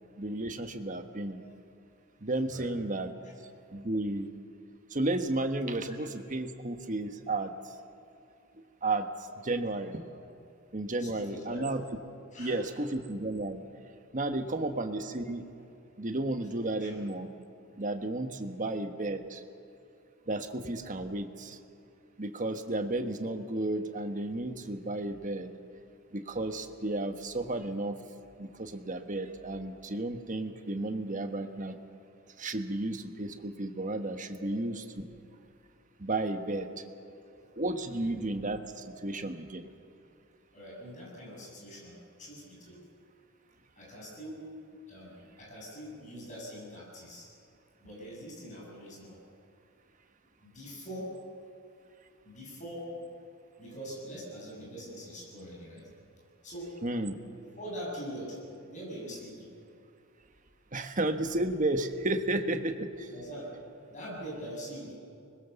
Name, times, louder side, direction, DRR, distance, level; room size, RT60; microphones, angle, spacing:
voice 1, 0.2-1.4 2.2-3.1 3.7-4.3 4.9-7.5 8.8-10.0 10.7-11.8 12.4-13.6 14.1-15.4 16.0-17.3 17.8-19.4 20.3-21.6 22.2-25.5 26.1-28.0 28.4-31.8 32.4-34.8 36.0-36.8 37.6-39.7 56.8-57.1 60.7-63.1, right 2 dB, 35° right, 7 dB, 1.3 m, -33 dB
voice 2, 11.0-11.8 12.3-12.6 14.4-14.7 16.8-16.9 34.4-34.6 37.0-37.1 38.0-38.1 40.5-42.9 43.7-44.5 44.9-47.3 47.8-49.2 50.4-51.2 52.2-53.1 53.6-55.9 56.4-56.8 57.3-58.4 58.6-59.5 63.1-63.5 63.9-64.9, equal, 35° left, -3 dB, 7.8 m, -43 dB
25.5 x 21.0 x 7.0 m, 2.5 s
head